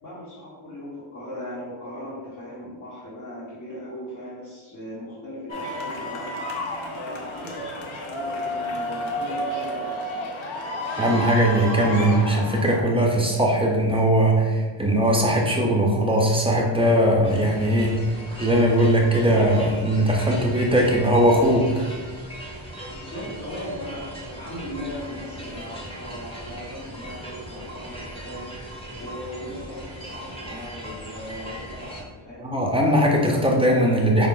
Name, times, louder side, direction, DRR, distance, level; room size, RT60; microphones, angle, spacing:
voice 1, 0.0-6.4 6.9-10.4 22.9-28.5 29.0-32.5, left 1 dB, 45° left, -10 dB, 1.3 m, -38 dB
sound 1, 5.5-12.8, equal, 70° left, 0.8 m, -31 dB
voice 2, 11.0-18.0 18.4-21.9 32.4-34.3, right 1 dB, 10° right, -1 dB, 0.4 m, -20 dB
sound 2, 17.2-32.0, right 1 dB, 10° left, 0.8 m, -38 dB
4.9 x 2.4 x 3.8 m, 1.4 s
wide cardioid pair, 160°, 49 cm